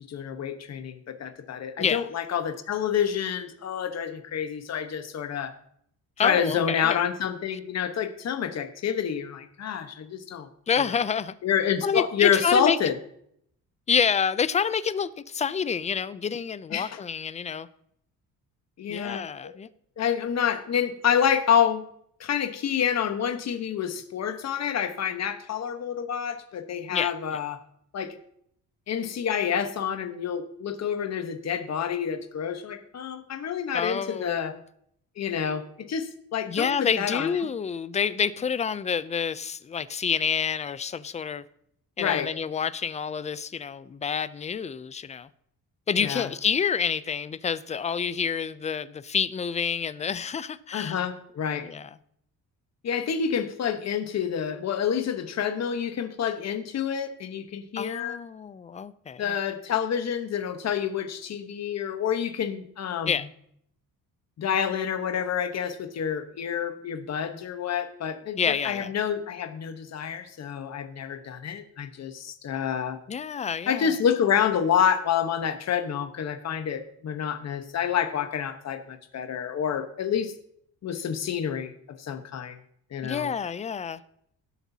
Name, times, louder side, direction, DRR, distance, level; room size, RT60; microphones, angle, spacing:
voice 1, 0.0-5.5 6.2-10.5 10.8-10.9 11.4-12.9 16.7-17.0 18.8-19.5 20.0-21.9 22.2-27.6 27.9-28.2 28.9-34.5 35.2-37.3 42.0-42.3 46.0-46.3 50.7-51.7 52.8-58.2 59.2-63.2 64.4-73.0 73.7-80.3 80.8-82.6 82.9-83.3, left 8 dB, 50° left, 1.1 m, -28 dB
voice 2, 6.2-7.0 10.7-11.4 11.8-12.8 13.9-17.7 18.9-19.7 26.9-27.4 33.7-34.6 36.5-41.4 42.0-45.3 45.9-51.0 51.6-51.9 57.8-59.3 63.1-63.3 68.4-68.9 73.1-74.0 83.0-84.0, left 6 dB, 20° left, 0.3 m, -28 dB
17.5 x 8.1 x 2.8 m
cardioid pair, 135°, 35 cm